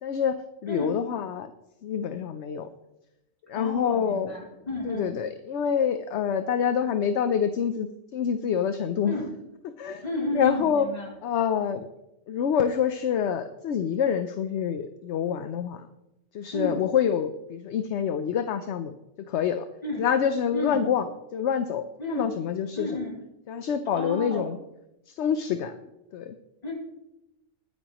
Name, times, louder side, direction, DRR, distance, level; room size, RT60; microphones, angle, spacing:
voice 1, 0.0-1.5 1.8-2.7 3.5-4.4 4.8-9.1 9.8-10.0 10.3-10.9 11.2-11.9 12.3-15.9 16.3-18.9 19.3-19.7 20.0-21.1 21.3-21.8 22.1-22.9 23.5-24.6 25.1-25.8 26.1-26.4, left 8 dB, 65° left, 10 dB, 0.9 m, -26 dB
voice 2, 0.7-1.0 3.5-5.1 9.0-9.3 10.0-11.1 16.5-16.8 19.8-20.1 20.5-20.9 22.0-22.3 22.7-23.2 23.9-24.5 26.6-26.7, left 1 dB, 30° left, -4 dB, 4.3 m, -32 dB
20.5 x 9.8 x 3.0 m, 0.93 s
omnidirectional pair, 1.3 m